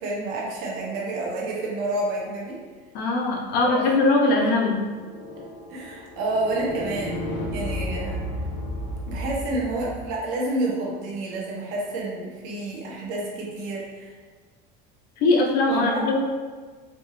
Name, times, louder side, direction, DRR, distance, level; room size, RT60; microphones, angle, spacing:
voice 1, 0.0-2.6 3.7-3.8 4.2-4.5 5.3-5.4 5.7-7.2 7.5-8.3 9.1-14.2 15.7-16.0, right 2 dB, 75° right, -3 dB, 1.1 m, -29 dB
voice 2, 2.9-4.8 15.2-16.2, left 2 dB, 55° left, -1 dB, 0.7 m, -21 dB
sound 1, 4.7-10.1, left 1 dB, 85° left, 0.8 m, -33 dB
4.4 x 2.6 x 3.1 m, 1.5 s
cardioid pair, 165°, 20 cm